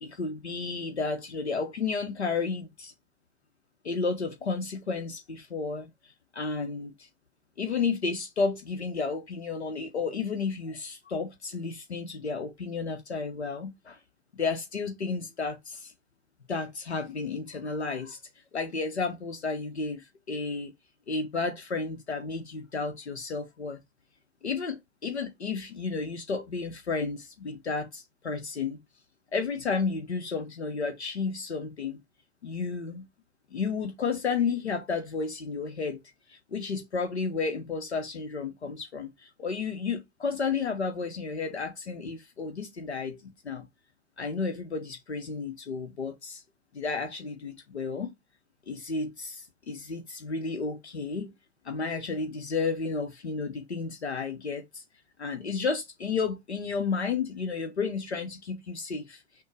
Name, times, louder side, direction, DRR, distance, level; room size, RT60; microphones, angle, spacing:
voice 1, 0.0-2.9 3.8-7.1 7.6-14.0 14.3-15.9 16.5-18.2 18.5-20.7 21.1-23.8 24.4-28.8 29.3-32.0 32.4-33.0 33.5-36.0 36.3-43.7 44.2-46.4 46.7-48.1 48.7-51.3 51.6-54.8 55.2-59.2, left 4 dB, 80° left, 0.8 m, -32 dB
6.2 x 2.2 x 3.1 m
figure-of-eight pair, 95°, 32 cm